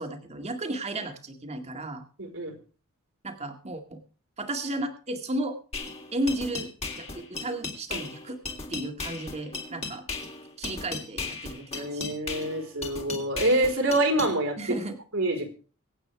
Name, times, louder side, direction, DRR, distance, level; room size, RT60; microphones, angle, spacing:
voice 1, 0.0-2.0 3.2-4.0 4.4-5.6 6.1-6.7 7.0-8.4 8.7-10.1 10.6-12.0 14.6-15.0, right 1 dB, 30° right, 4 dB, 2.2 m, -33 dB
voice 2, 2.2-2.5 7.9-8.0 11.7-14.8 15.1-15.5, right 1 dB, 75° right, 2 dB, 4.0 m, -26 dB
sound 1, 5.7-14.3, left 3 dB, 30° left, 3.2 m, -36 dB
24.5 x 8.8 x 3.5 m, 0.37 s
head